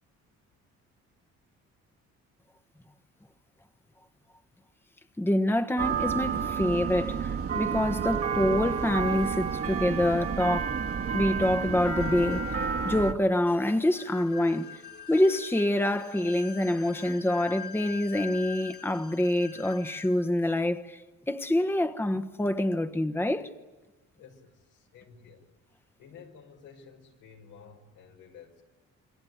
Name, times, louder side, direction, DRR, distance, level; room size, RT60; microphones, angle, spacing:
voice 1, 5.2-10.7 11.1-14.8 15.1-21.0 21.3-23.5, left 1 dB, 5° left, 1.3 m, -26 dB
sound 1, 5.8-13.1, right 6 dB, 50° right, 1.9 m, -30 dB
sound 2, 8.3-20.3, left 7 dB, 70° left, 4.1 m, -46 dB
voice 2, 24.2-25.5 26.0-28.6, left 6 dB, 90° left, 5.6 m, -52 dB
28.0 x 22.0 x 9.4 m
cardioid pair, 90°, 30 cm